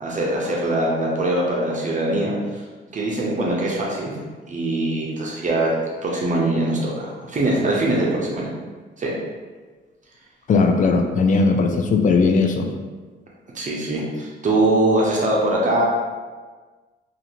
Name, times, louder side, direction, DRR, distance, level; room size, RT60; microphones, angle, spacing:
voice 1, 0.0-2.6 2.9-4.1 4.5-8.5 9.0-9.1 13.5-15.9, right 1 dB, 40° right, -3 dB, 0.7 m, -22 dB
voice 2, 10.5-12.7, left 4 dB, 40° left, 5 dB, 0.4 m, -18 dB
2.6 x 2.5 x 2.9 m, 1.4 s
cardioid pair, 90°, 20 cm